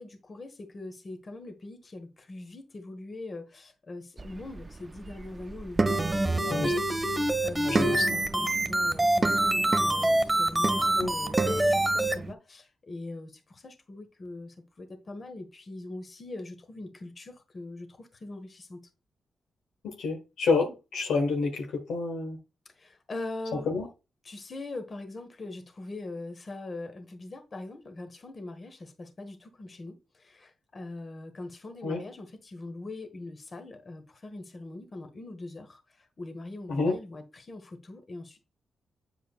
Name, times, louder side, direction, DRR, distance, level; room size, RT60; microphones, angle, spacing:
voice 1, 0.0-18.8 22.6-23.7 24.2-38.4, left 2 dB, 45° left, 1.4 m, -42 dB
sound 1, 4.2-12.3, right 3 dB, 35° right, 0.5 m, -33 dB
sound 2, 5.9-12.1, right 1 dB, 15° right, 1.4 m, -26 dB
voice 2, 7.6-8.2 11.0-11.1 19.8-22.4 23.5-23.9 31.8-32.0 36.7-36.9, left 4 dB, 80° left, 1.3 m, -28 dB
8.2 x 4.9 x 2.4 m
supercardioid pair, 45°, 0 cm